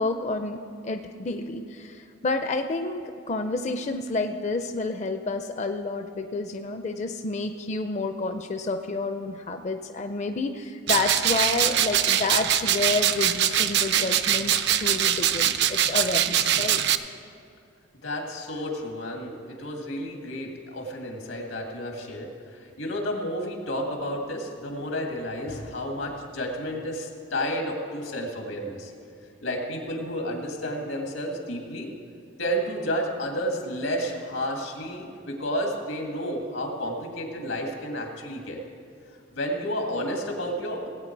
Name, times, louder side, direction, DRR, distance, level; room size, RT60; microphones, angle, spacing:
voice 1, 0.0-16.8, left 3 dB, 35° left, 6 dB, 0.4 m, -29 dB
sound 1, 10.9-17.0, right 10 dB, 60° right, 0.5 m, -23 dB
voice 2, 17.9-28.9 29.4-31.9 32.4-38.6 39.3-40.9, equal, 90° left, 2 dB, 2.0 m, -31 dB
17.5 x 8.6 x 4.6 m, 2.5 s
head